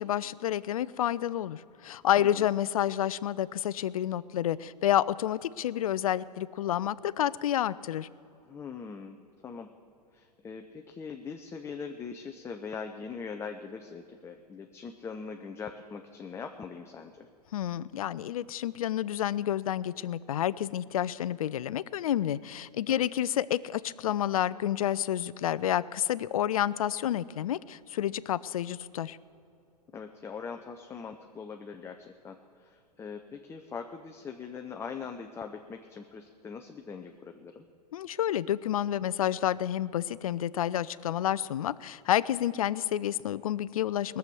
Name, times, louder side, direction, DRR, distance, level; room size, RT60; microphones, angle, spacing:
voice 1, 0.0-8.1 17.5-29.2 37.9-44.2, left 11 dB, 60° left, 19 dB, 0.5 m, -29 dB
voice 2, 2.2-2.5 8.4-9.7 10.1-17.3 22.9-23.1 29.9-37.7, left 5 dB, 15° left, 5 dB, 0.6 m, -42 dB
20.0 x 7.0 x 7.8 m, 2.7 s
figure-of-eight pair, 100°, 21 cm